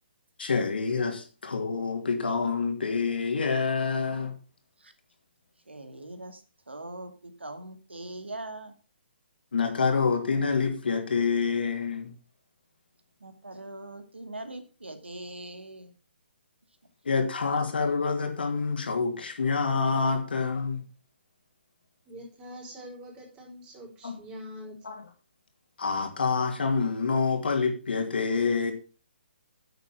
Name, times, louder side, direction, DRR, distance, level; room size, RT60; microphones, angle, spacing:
voice 1, 0.4-4.3 9.5-12.1 17.0-20.8 24.0-24.2 24.8-25.0 25.8-28.7, left 5 dB, 65° left, 2.8 m, -27 dB
voice 2, 5.7-8.7 13.2-15.9, right 2 dB, 80° right, 2.3 m, -41 dB
voice 3, 22.1-24.8, equal, 15° right, 4.6 m, -44 dB
9.8 x 8.1 x 5.7 m
figure-of-eight pair, 135°, 6 cm